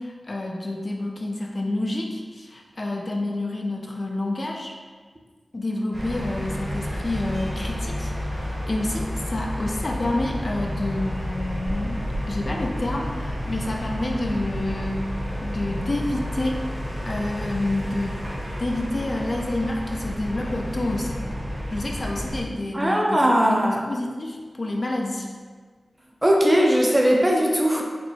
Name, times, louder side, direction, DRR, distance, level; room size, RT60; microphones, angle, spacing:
voice 1, 0.0-4.7 5.5-12.0 12.2-15.1 15.4-16.6 17.0-18.2 18.6-21.3 21.7-25.3, left 1 dB, 45° left, 0 dB, 0.4 m, -28 dB
sound 1, 5.9-22.4, equal, 45° right, 1.2 m, -30 dB
voice 2, 22.7-23.8 26.2-27.8, equal, 20° right, -1 dB, 0.6 m, -19 dB
4.4 x 2.0 x 4.1 m, 1.5 s
wide cardioid pair, 80°, 0 cm